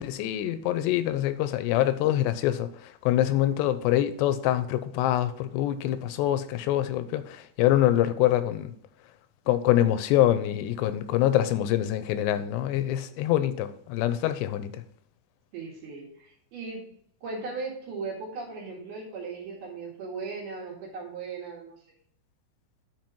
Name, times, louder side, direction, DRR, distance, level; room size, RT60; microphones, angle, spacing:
voice 1, 0.0-8.7 9.5-14.8, left 12 dB, 85° left, 2.9 m, -25 dB
voice 2, 15.5-16.9 17.2-21.8, right 4 dB, 70° right, 3.6 m, -37 dB
9.5 x 4.5 x 4.6 m
omnidirectional pair, 4.8 m